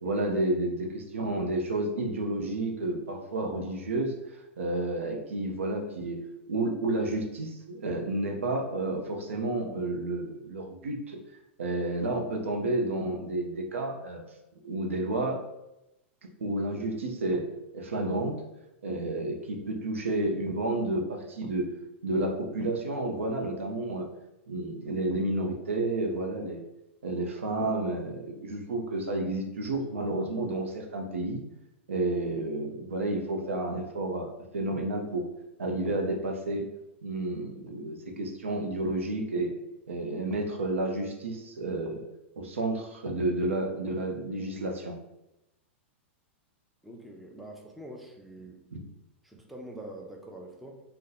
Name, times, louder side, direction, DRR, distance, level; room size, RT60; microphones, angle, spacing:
voice 1, 0.0-6.2 6.5-11.2 11.6-14.2 14.6-15.4 16.4-17.5 17.7-18.4 18.8-21.7 22.0-24.1 24.5-26.6 27.0-31.4 31.9-35.3 35.6-36.7 37.0-39.5 39.9-42.0 42.4-45.0 48.7-48.8, right 2 dB, 85° right, 2 dB, 0.6 m, -31 dB
voice 2, 46.8-48.6 49.2-50.8, right 1 dB, ahead, 0 dB, 0.5 m, -44 dB
2.7 x 2.1 x 3.8 m, 0.90 s
hypercardioid pair, 110°, 7 cm